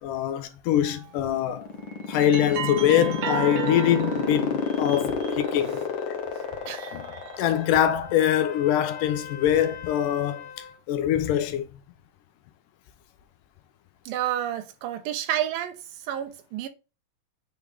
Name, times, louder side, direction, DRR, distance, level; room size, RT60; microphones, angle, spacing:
voice 1, 0.0-1.7 2.1-5.8 6.1-6.2 6.9-7.1 7.4-11.7, left 11 dB, 80° left, 2.1 m, -24 dB
sound 1, 0.8-1.1 1.8-5.9 6.5-7.6, right 7 dB, 65° right, 2.0 m, -35 dB
sound 2, 1.3-8.0, left 6 dB, 60° left, 1.3 m, -29 dB
Trumpet, 3.0-10.8, left 5 dB, 25° left, 1.3 m, -44 dB
voice 2, 14.1-15.8 16.0-16.7, right 11 dB, 90° right, 2.6 m, -29 dB
8.1 x 3.5 x 3.4 m
omnidirectional pair, 4.0 m